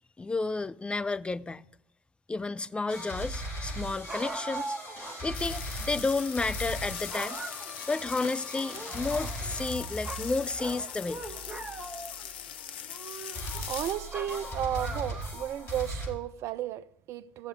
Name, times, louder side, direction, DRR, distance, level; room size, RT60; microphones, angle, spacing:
voice 1, 0.2-1.7 2.3-4.8 5.2-7.4 7.9-11.2, left 3 dB, 20° left, 0.5 m, -31 dB
sound 1, 2.9-12.8 13.3-16.1, equal, 50° left, 5.1 m, -39 dB
sound 2, 4.1-5.2 5.6-5.7 6.5-6.8 7.1-8.1 8.5-9.7 10.0-12.3 12.8-13.6 14.1-15.4, right 2 dB, 20° right, 1.4 m, -41 dB
sound 3, 5.3-13.9, left 9 dB, 80° left, 0.5 m, -41 dB
voice 2, 13.7-17.5, right 11 dB, 60° right, 0.5 m, -33 dB
16.0 x 7.2 x 5.0 m
hypercardioid pair, 55°, 5 cm